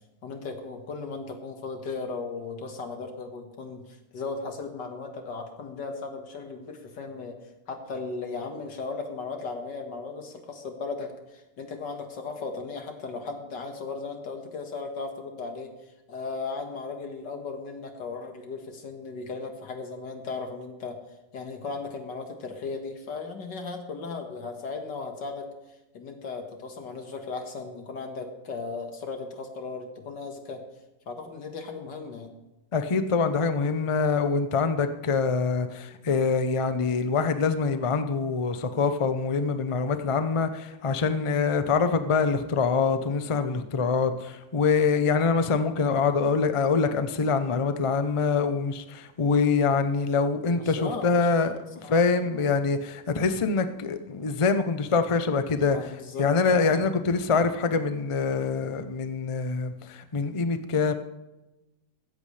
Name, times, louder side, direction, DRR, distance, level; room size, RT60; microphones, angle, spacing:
voice 1, 0.2-7.4 7.7-15.7 16.1-21.0 21.3-25.5 25.9-30.6 31.1-32.3 50.6-51.5 51.8-52.0 55.7-56.8, left 4 dB, 75° left, 4 dB, 2.3 m, -36 dB
voice 2, 32.7-55.8 56.2-60.9, left 4 dB, 40° left, 9 dB, 0.4 m, -25 dB
16.0 x 14.0 x 3.4 m, 1.0 s
omnidirectional pair, 1.9 m